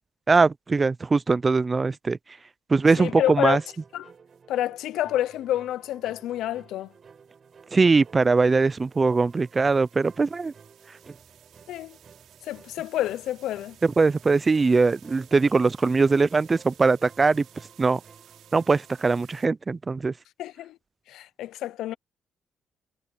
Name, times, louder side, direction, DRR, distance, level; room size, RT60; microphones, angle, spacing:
voice 1, 0.3-2.2 2.7-3.6 7.7-10.5 13.8-17.4 17.8-18.0 18.5-20.1, right 4 dB, 30° right, 0.3 m, -21 dB
voice 2, 3.0-3.6 3.9-4.1 4.5-6.9 11.7-12.0 12.4-13.8 20.4-20.8 21.1-21.9, left 13 dB, 85° left, 0.5 m, -28 dB
sound 1, 3.0-19.0, right 6 dB, 45° right, 4.0 m, -54 dB
sound 2, 4.1-4.4 6.6-19.4, right 11 dB, 75° right, 3.5 m, -56 dB
cardioid pair, 90°, 0 cm